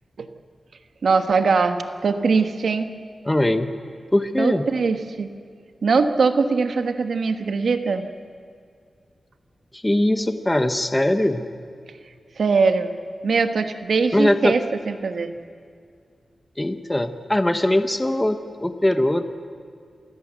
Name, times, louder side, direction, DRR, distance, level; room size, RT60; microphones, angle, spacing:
voice 1, 1.0-2.9 4.4-5.3 5.8-8.0 12.4-12.9 13.2-14.6 14.9-15.3, right 4 dB, 70° right, 8 dB, 1.2 m, -21 dB
voice 2, 3.2-3.7 4.1-4.7 9.7-11.5 14.1-14.5 16.6-19.2, left 1 dB, 10° left, 9 dB, 0.9 m, -21 dB
27.5 x 15.0 x 8.1 m, 2.2 s
wide cardioid pair, 125°, 0 cm